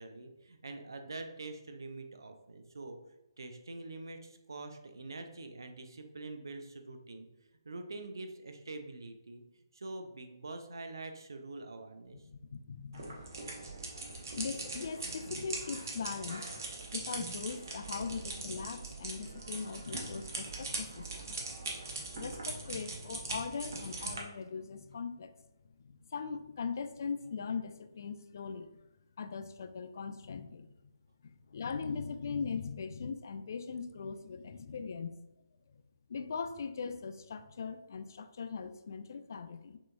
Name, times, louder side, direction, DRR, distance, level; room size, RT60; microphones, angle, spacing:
voice 1, 0.0-3.0 3.4-7.3 7.6-9.4 9.7-12.2, right 2 dB, 65° right, 6 dB, 0.6 m, -45 dB
voice 2, 12.2-13.5 14.3-21.4 22.1-25.3 25.8-28.7 29.2-30.8 31.5-35.1 36.1-39.8, left 5 dB, 50° left, 9 dB, 0.3 m, -40 dB
sound 1, 12.9-24.2, right 3 dB, 50° right, 0.9 m, -41 dB
6.0 x 3.0 x 2.2 m, 0.95 s
figure-of-eight pair, 140°, 2 cm